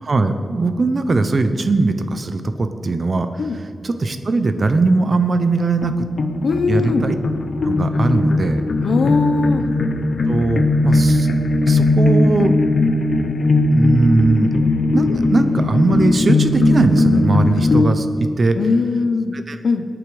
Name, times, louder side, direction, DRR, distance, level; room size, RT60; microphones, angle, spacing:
voice 1, 0.0-6.1 6.7-7.2 7.6-8.7 10.3-11.3 11.7-12.6 13.7-14.5 14.9-18.6 19.3-19.6, right 3 dB, 40° right, 9 dB, 0.9 m, -19 dB
sound 1, 5.8-17.9, left 2 dB, 55° left, 0.8 m, -18 dB
voice 2, 6.4-7.1 8.8-9.6 18.5-19.4 19.6-19.9, left 4 dB, 75° left, 8 dB, 1.0 m, -19 dB
24.5 x 8.9 x 5.0 m, 2.2 s
wide cardioid pair, 175°, 0 cm